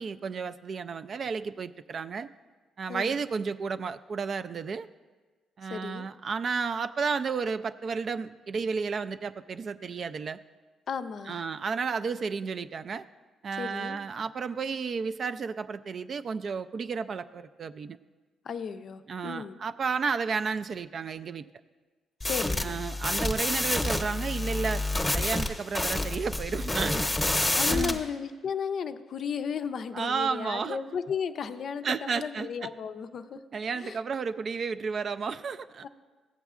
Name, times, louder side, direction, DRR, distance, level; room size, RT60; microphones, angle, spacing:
voice 1, 0.0-2.3 2.8-4.9 5.6-10.4 11.3-13.0 13.4-18.0 19.1-21.5 22.6-24.8 25.1-27.1 27.6-28.0 29.9-30.8 31.8-32.7 33.5-35.9, right 5 dB, 50° right, 11 dB, 0.3 m, -32 dB
voice 2, 5.6-6.1 10.9-11.4 13.6-14.0 18.4-19.6 22.2-22.8 27.5-33.4 33.7-34.0 35.8-35.9, left 7 dB, 60° left, 10 dB, 0.4 m, -34 dB
sound 1, 22.2-28.0, left 2 dB, 15° left, 0.8 m, -28 dB
15.0 x 8.0 x 2.4 m, 1.3 s
cardioid pair, 90°, 0 cm